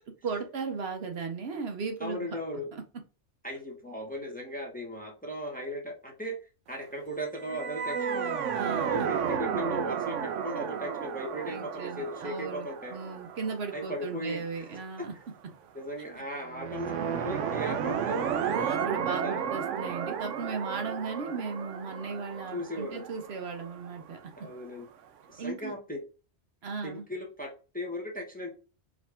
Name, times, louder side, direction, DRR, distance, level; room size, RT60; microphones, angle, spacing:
voice 1, 0.2-2.3 2.7-2.8 8.5-9.1 11.5-15.1 18.5-24.5 25.4-25.7 26.6-27.0, right 5 dB, 65° right, 5 dB, 0.9 m, -36 dB
voice 2, 2.0-2.7 3.4-8.4 8.9-13.0 13.7-14.8 15.7-18.3 19.2-19.5 22.5-23.0 24.4-24.9 25.3-26.0 26.8-28.5, equal, 10° left, 0 dB, 0.9 m, -37 dB
sound 1, 7.4-14.6 16.5-24.3, right 7 dB, 90° right, 0.9 m, -33 dB
4.9 x 2.6 x 3.4 m, 0.35 s
omnidirectional pair, 1.2 m